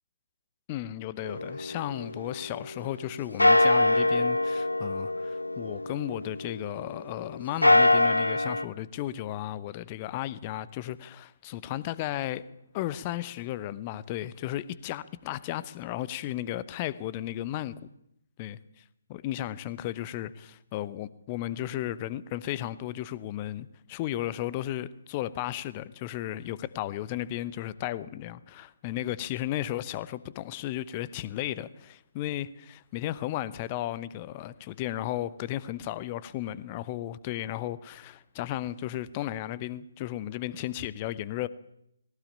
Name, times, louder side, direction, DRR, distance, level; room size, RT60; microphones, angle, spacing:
voice 1, 0.7-12.4 12.7-17.9 18.4-18.8 19.1-41.5, left 13 dB, 25° left, 0.8 m, -34 dB
sound 1, 1.2-3.0 3.4-6.9 7.4-8.6, left 2 dB, 80° left, 1.2 m, -24 dB
19.0 x 18.0 x 8.8 m
figure-of-eight pair, 140°, 0 cm